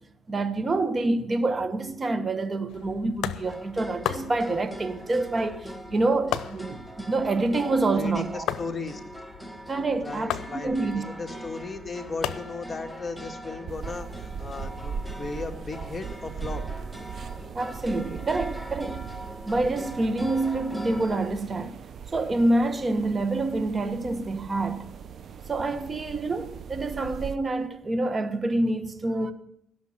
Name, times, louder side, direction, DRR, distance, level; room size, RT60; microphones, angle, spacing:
voice 1, 0.3-8.4 9.7-11.0 17.5-19.1 19.5-21.8 22.1-24.9 25.5-29.3, right 2 dB, 30° right, 1.3 m, -27 dB
sound 1, 2.7-15.7, left 12 dB, 85° left, 0.6 m, -38 dB
sound 2, 3.5-21.3, right 1 dB, ahead, 1.4 m, -42 dB
voice 2, 7.9-9.0 10.0-16.6, left 3 dB, 25° left, 1.8 m, -36 dB
sound 3, 13.7-27.4, right 6 dB, 60° right, 0.7 m, -39 dB
16.5 x 6.4 x 7.2 m
cardioid pair, 90°, 0 cm